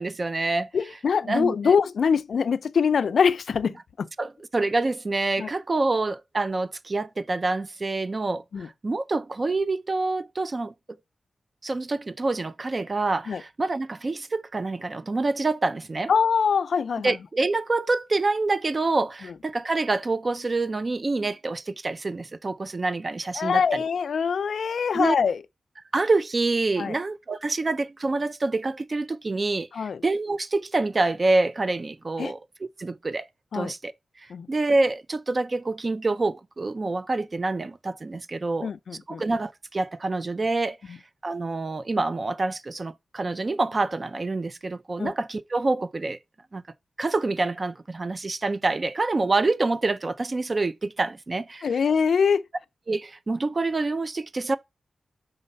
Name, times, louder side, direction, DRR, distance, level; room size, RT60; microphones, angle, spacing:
voice 1, 0.0-0.7 1.3-1.8 4.2-8.4 8.8-10.7 11.6-16.1 17.0-23.8 24.9-25.2 25.9-32.4 32.8-33.3 33.5-33.9 34.5-38.7 39.1-41.0 41.2-46.2 46.5-46.6 47.0-51.7 52.9-54.6, right 3 dB, 30° right, 0.4 m, -26 dB
voice 2, 0.7-4.1 5.4-5.5 8.5-8.7 13.3-13.4 16.1-17.2 23.3-25.4 26.8-27.0 29.7-30.0 32.2-32.3 33.5-33.7 34.3-34.5 38.6-39.2 40.9-41.0 45.0-45.1 51.6-52.4, left 6 dB, 75° left, 0.4 m, -24 dB
5.4 x 4.0 x 5.1 m
wide cardioid pair, 150°, 0 cm